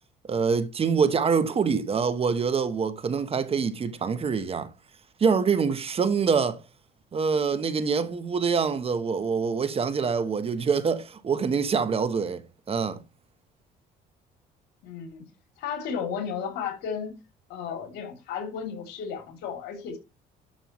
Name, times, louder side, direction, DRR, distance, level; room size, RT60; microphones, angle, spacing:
voice 1, 0.2-4.7 5.2-6.6 7.1-12.4 12.7-13.0, right 5 dB, 35° right, 1.1 m, -25 dB
voice 2, 14.8-15.2 15.6-17.2 17.5-20.0, left 7 dB, 85° left, 3.2 m, -33 dB
11.5 x 5.6 x 3.1 m
cardioid pair, 110°, 17 cm